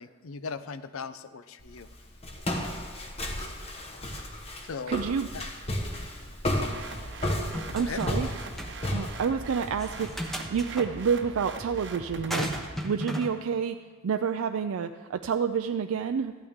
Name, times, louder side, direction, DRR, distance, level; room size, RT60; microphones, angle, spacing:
voice 1, 0.0-1.9 4.6-5.0 5.3-5.4 7.8-8.0, left 5 dB, 80° left, 13 dB, 0.6 m, -38 dB
Walk footsteps, 1.6-10.2, left 1 dB, 30° left, 1.2 m, -33 dB
voice 2, 4.9-5.3 7.7-8.3 8.9-10.1 10.5-12.6 12.8-16.3, right 6 dB, 80° right, 7 dB, 0.4 m, -29 dB
sound 1, 6.5-12.7, right 3 dB, 60° right, 0.9 m, -41 dB
sound 2, 7.2-8.3 8.6-8.7 9.8-10.9 12.3-13.3, equal, ahead, 0.9 m, -34 dB
14.5 x 11.5 x 3.6 m, 1.5 s
head